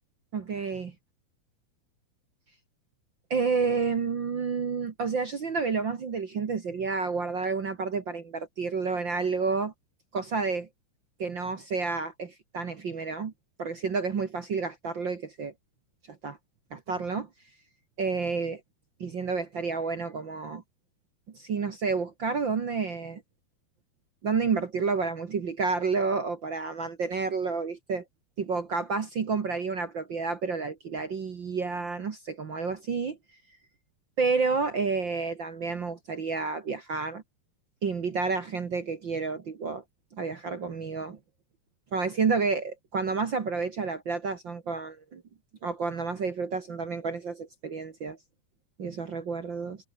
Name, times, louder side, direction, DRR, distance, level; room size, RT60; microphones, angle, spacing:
voice 1, 0.3-0.9 3.3-9.7 10.1-10.7 11.2-13.3 13.6-15.5 16.1-16.4 16.7-17.3 18.0-18.6 19.0-20.6 21.3-23.2 24.2-28.0 28.4-33.2 34.2-37.2 37.8-39.8 40.1-41.2 41.9-45.2 45.6-48.2 48.8-49.8, right 4 dB, 55° right, 1.3 m, -30 dB
omnidirectional pair, 4.7 m